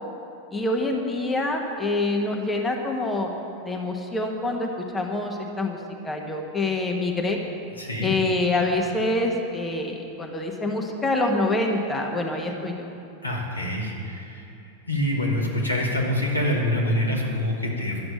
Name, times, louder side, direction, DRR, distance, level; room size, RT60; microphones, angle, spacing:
voice 1, 0.5-3.3 3.6-5.8 6.0-7.4 8.0-12.9, left 2 dB, 15° left, 2 dB, 1.4 m, -26 dB
voice 2, 7.8-8.2 13.2-14.5 14.9-18.0, left 1 dB, 85° left, -4 dB, 2.6 m, -25 dB
12.0 x 7.7 x 8.9 m, 2.8 s
figure-of-eight pair, 90°, 0 cm